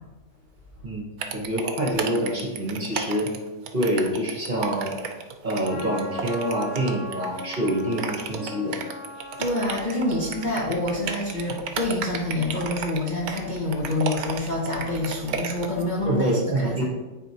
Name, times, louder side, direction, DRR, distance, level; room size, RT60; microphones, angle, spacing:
sound 1, 1.2-15.8, right 6 dB, 65° right, 1.0 m, -33 dB
voice 1, 1.3-3.3 3.7-4.9 5.4-8.8 16.1-16.8, right 1 dB, 35° right, -2 dB, 1.0 m, -26 dB
Trumpet, 5.6-11.8, left 1 dB, 75° left, 2.9 m, -40 dB
voice 2, 9.4-16.3 16.6-16.8, left 2 dB, 45° left, -3 dB, 0.6 m, -27 dB
9.1 x 4.3 x 2.8 m, 1.2 s
omnidirectional pair, 1.8 m